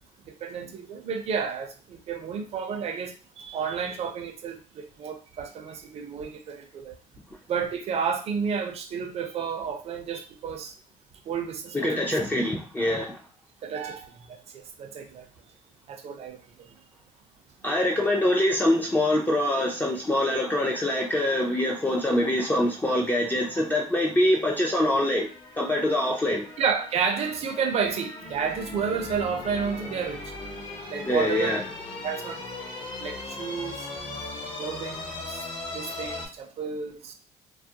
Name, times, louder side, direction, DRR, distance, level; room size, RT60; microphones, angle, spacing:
voice 1, 0.4-7.0 7.5-10.7 11.3-12.1 13.6-15.3 15.9-16.4 26.6-30.3 30.9-31.5 32.0-32.4 33.0-33.9 34.6-35.4 35.7-37.1, right 6 dB, 50° right, 0.5 m, -31 dB
voice 2, 11.7-13.2 17.6-25.3 25.5-26.5 31.0-31.6, left 1 dB, 15° left, 0.4 m, -24 dB
sound 1, 25.0-36.3, left 2 dB, 40° left, 0.8 m, -38 dB
2.3 x 2.1 x 2.7 m
cardioid pair, 105°, 14 cm